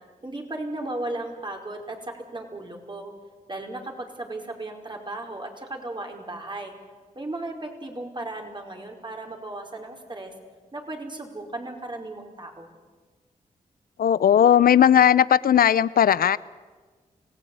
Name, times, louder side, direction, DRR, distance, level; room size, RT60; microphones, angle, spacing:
voice 1, 0.2-3.1 3.5-6.8 7.1-10.3 10.7-12.8, right 2 dB, 30° right, 2 dB, 5.1 m, -35 dB
voice 2, 14.0-16.4, left 9 dB, 75° left, 19 dB, 0.6 m, -17 dB
26.5 x 17.5 x 8.7 m, 1.4 s
cardioid pair, 50°, 15 cm